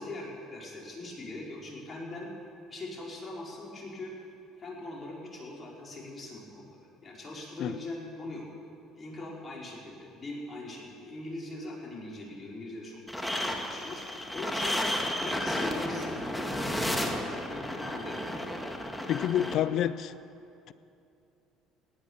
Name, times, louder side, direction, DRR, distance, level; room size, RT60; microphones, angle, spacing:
voice 1, 0.0-2.3 2.7-4.1 4.6-8.4 8.9-13.0 13.4-14.8 15.2-18.2, left 2 dB, 35° left, -3 dB, 4.8 m, -41 dB
sound 1, 13.1-19.5, left 1 dB, 5° left, 2.0 m, -32 dB
voice 2, 19.1-20.1 20.7-20.8, left 11 dB, 60° left, 16 dB, 0.5 m, -28 dB
18.0 x 9.9 x 7.2 m, 2.7 s
supercardioid pair, 80°, 0 cm